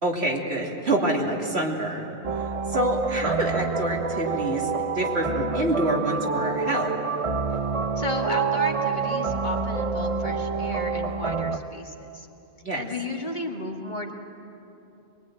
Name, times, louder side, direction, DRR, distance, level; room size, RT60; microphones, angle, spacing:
voice 1, 0.0-6.9 12.6-12.9, right 1 dB, 70° right, -1 dB, 3.1 m, -27 dB
sound 1, 2.2-11.6, right 4 dB, 35° right, 0.8 m, -27 dB
voice 2, 8.0-12.3 12.7-14.1, left 2 dB, 45° left, 1 dB, 2.1 m, -34 dB
23.0 x 22.5 x 9.2 m, 2.9 s
omnidirectional pair, 1.1 m